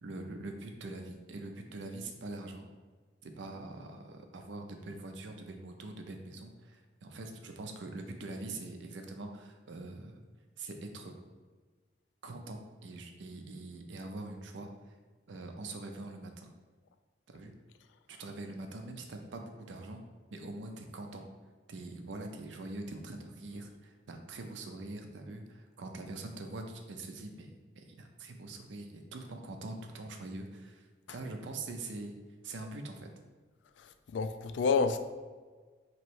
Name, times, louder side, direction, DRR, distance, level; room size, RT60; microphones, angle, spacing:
voice 1, 0.0-2.7 3.2-10.2 10.6-11.1 12.2-14.7 15.3-16.5 17.3-17.5 18.1-20.0 20.3-21.3 21.7-30.9 31.1-32.1 32.4-33.1, right 2 dB, 90° right, 4 dB, 0.5 m, -43 dB
voice 2, 33.8-35.0, left 5 dB, 85° left, 9 dB, 0.3 m, -29 dB
3.1 x 3.0 x 4.5 m, 1.4 s
head